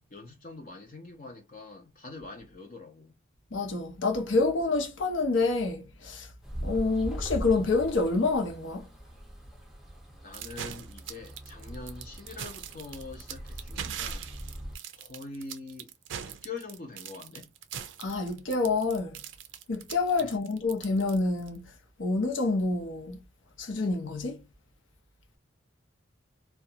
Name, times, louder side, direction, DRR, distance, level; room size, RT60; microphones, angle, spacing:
voice 1, 0.0-3.1 10.2-14.3 14.9-15.9 16.2-17.5 20.2-20.5, left 3 dB, 45° left, 0.6 m, -44 dB
voice 2, 3.5-6.3 6.6-8.8 18.0-19.2 19.7-21.7 22.0-23.2 23.6-24.4, left 3 dB, 80° left, 0.7 m, -27 dB
sound 1, 6.4-14.8, equal, ahead, 0.5 m, -41 dB
sound 2, 10.3-21.6, right 9 dB, 75° right, 0.4 m, -41 dB
2.4 x 2.2 x 2.7 m
head